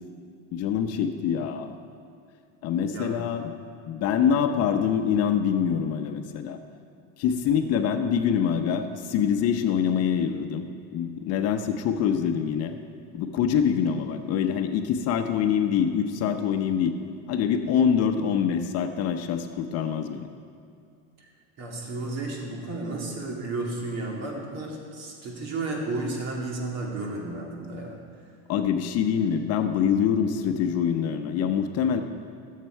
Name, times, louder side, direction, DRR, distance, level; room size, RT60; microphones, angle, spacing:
voice 1, 0.5-1.7 2.6-3.5 3.9-6.6 7.2-10.7 10.9-12.8 13.1-17.0 17.3-20.3 28.5-32.0, left 8 dB, 50° left, 6 dB, 0.8 m, -25 dB
voice 2, 21.6-27.9, right 2 dB, 50° right, -1 dB, 2.5 m, -32 dB
14.0 x 7.5 x 4.5 m, 2.4 s
supercardioid pair, 125°, 33 cm